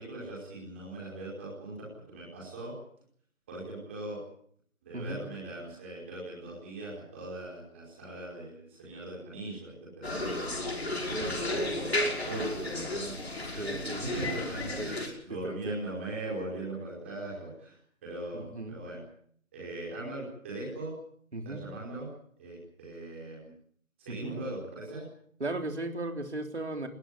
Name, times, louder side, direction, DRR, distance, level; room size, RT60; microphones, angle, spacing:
voice 1, 0.0-2.7 3.5-4.2 4.8-10.5 11.2-11.9 12.3-13.8 14.1-19.0 19.5-20.9 21.4-22.1 22.4-23.5 24.0-25.0, right 2 dB, 10° right, -5 dB, 4.9 m, -40 dB
sound 1, 10.0-15.1, left 1 dB, 45° left, 5.5 m, -33 dB
voice 2, 11.1-11.5 13.6-14.3 14.8-14.9 15.3-15.8 18.4-18.8 21.3-21.6 24.1-24.3 25.4-26.9, right 2 dB, 50° right, 5 dB, 3.7 m, -36 dB
21.0 x 19.0 x 9.9 m, 0.62 s
figure-of-eight pair, 170°, 42 cm